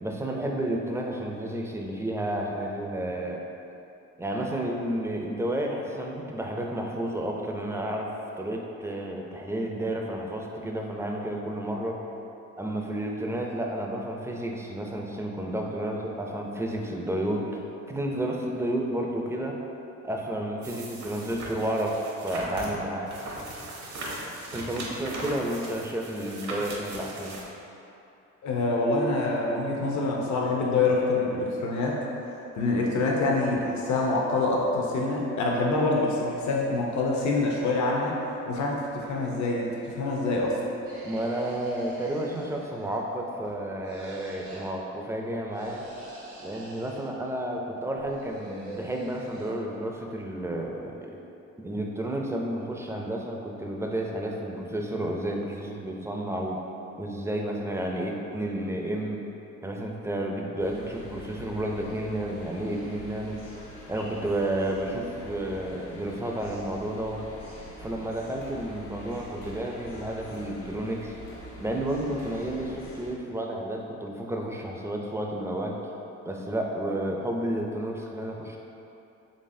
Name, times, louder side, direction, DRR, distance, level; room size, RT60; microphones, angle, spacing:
voice 1, 0.0-3.4 4.2-12.0 12.6-19.6 20.0-22.0 22.2-23.1 24.5-27.4 41.0-45.8 46.4-51.2 51.6-56.6 57.0-59.2 59.6-63.4 63.9-67.2 67.8-71.2 71.6-75.8 76.2-78.6, right 1 dB, 10° right, 0 dB, 0.4 m, -31 dB
sound 1, 20.6-27.4, right 1 dB, 65° right, 0.8 m, -38 dB
voice 2, 28.4-32.0 32.5-40.6, left 2 dB, 70° left, -2 dB, 0.7 m, -26 dB
sound 2, 40.8-43.1 43.8-44.7 45.5-47.1 48.0-49.5, right 2 dB, 85° right, 1.1 m, -44 dB
sound 3, 60.6-73.1, left 1 dB, 90° left, 1.1 m, -45 dB
4.0 x 3.3 x 2.6 m, 2.8 s
cardioid pair, 90°, 30 cm